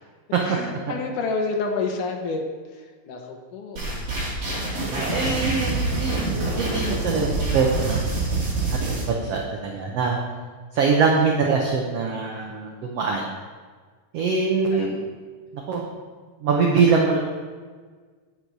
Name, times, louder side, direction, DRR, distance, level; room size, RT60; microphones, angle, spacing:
voice 1, 0.4-2.4 2.7-3.8 4.9-5.4 14.7-15.0, left 4 dB, 70° left, 2 dB, 2.7 m, -30 dB
sound 1, 3.8-9.1, right 2 dB, 45° right, 4.1 m, -26 dB
voice 2, 4.9-8.0 8.7-10.2 10.7-13.2 14.1-15.0 15.7-15.8 16.4-17.2, right 5 dB, 65° right, 0 dB, 1.7 m, -23 dB
9.6 x 9.4 x 4.8 m, 1.5 s
omnidirectional pair, 3.8 m